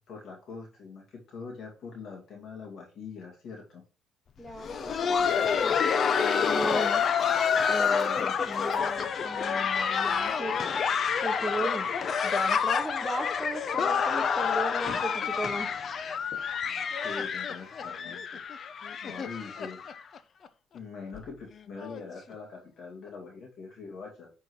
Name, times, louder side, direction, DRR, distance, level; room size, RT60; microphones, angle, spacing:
voice 1, 0.0-3.8 17.0-18.4 19.0-19.9 20.7-24.3, left 4 dB, 60° left, 0 dB, 2.3 m, -43 dB
voice 2, 4.4-7.0 7.7-10.6 11.2-11.9 12.2-15.7, right 1 dB, ahead, 7 dB, 1.3 m, -37 dB
Laughter, 4.5-20.2 20.4-20.5 21.1-21.3 21.8-22.0 23.1-23.2, left 6 dB, 45° left, 0.7 m, -28 dB
9.7 x 4.6 x 3.2 m, 0.36 s
cardioid pair, 110°, 0 cm